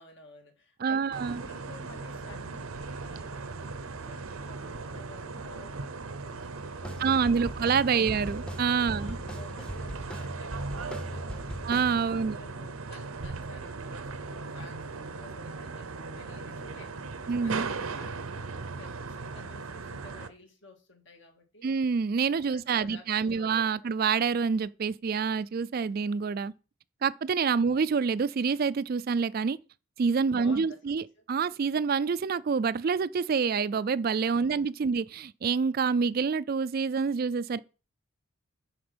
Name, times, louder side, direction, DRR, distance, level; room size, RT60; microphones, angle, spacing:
voice 1, 0.0-8.2 8.9-11.7 12.1-19.0 19.3-21.8 22.4-23.9 27.6-27.8 30.3-31.2 34.4-34.9, left 2 dB, 60° left, 2.0 m, -53 dB
voice 2, 0.8-1.4 7.0-9.2 11.6-12.4 17.3-17.7 21.6-26.5 27.0-29.6 30.0-37.6, right 5 dB, 45° right, 0.3 m, -27 dB
sound 1, 1.1-20.3, right 4 dB, 90° right, 0.8 m, -38 dB
sound 2, 6.8-11.9, equal, 5° left, 0.7 m, -39 dB
10.0 x 4.4 x 6.1 m
head